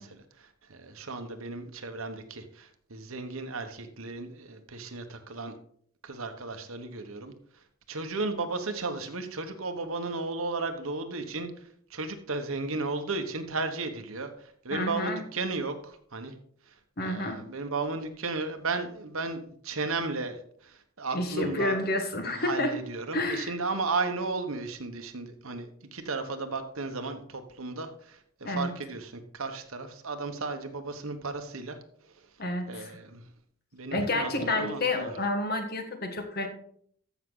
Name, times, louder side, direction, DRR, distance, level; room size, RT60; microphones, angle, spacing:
voice 1, 0.0-5.5 6.0-16.3 16.7-16.8 17.0-21.8 22.4-32.2 32.7-33.3 33.7-35.1, right 3 dB, 80° right, 7 dB, 1.3 m, -35 dB
voice 2, 14.7-15.2 17.0-17.4 21.1-22.7 23.1-23.5 28.4-28.7 32.4-32.9 33.9-36.5, left 2 dB, 45° left, 5 dB, 1.5 m, -29 dB
14.5 x 6.4 x 3.9 m, 0.62 s
head